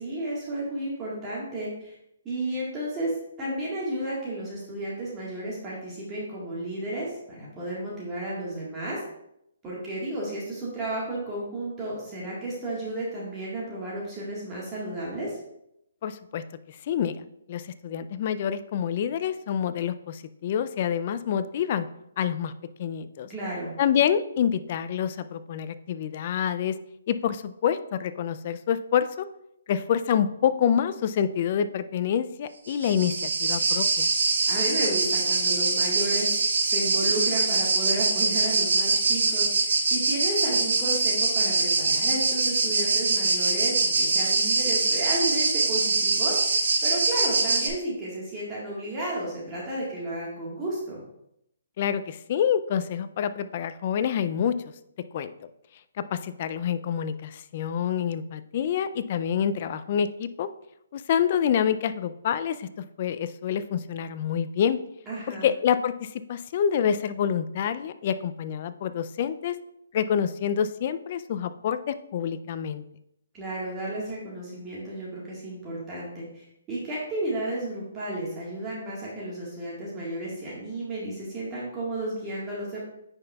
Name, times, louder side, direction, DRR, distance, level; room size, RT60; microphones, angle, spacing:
voice 1, 0.0-1.9 2.2-9.0 9.6-15.4 23.3-23.7 34.5-51.0 65.1-65.5 73.3-82.8, right 1 dB, 15° right, -6 dB, 1.6 m, -33 dB
voice 2, 16.0-21.9 22.2-22.5 22.8-23.3 23.8-26.8 27.1-29.3 29.7-34.1 51.8-54.6 55.1-55.3 56.0-60.5 60.9-62.7 63.0-64.8 65.3-69.6 69.9-72.8, left 8 dB, 40° left, 12 dB, 0.4 m, -27 dB
sound 1, 32.7-47.7, right 3 dB, 75° right, 1.6 m, -24 dB
9.6 x 5.2 x 2.3 m, 0.78 s
hypercardioid pair, 160°, 0 cm